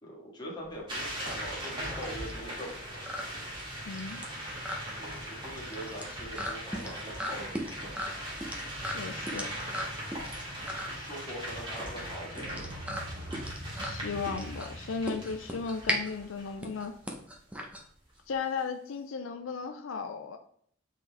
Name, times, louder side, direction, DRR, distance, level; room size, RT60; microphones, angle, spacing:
voice 1, 0.0-3.1 5.0-8.1 10.9-12.7, equal, 20° left, -4 dB, 1.9 m, -43 dB
sound 1, 0.6-18.4, equal, 5° right, 0.8 m, -39 dB
sound 2, 0.9-16.8, equal, 25° right, 1.6 m, -40 dB
voice 2, 3.9-4.3 8.9-9.5 13.8-17.0 18.3-20.4, left 5 dB, 80° left, 6 dB, 0.5 m, -35 dB
sound 3, 11.6-16.5, equal, 65° right, 1.5 m, -45 dB
7.5 x 3.8 x 3.4 m, 0.63 s
head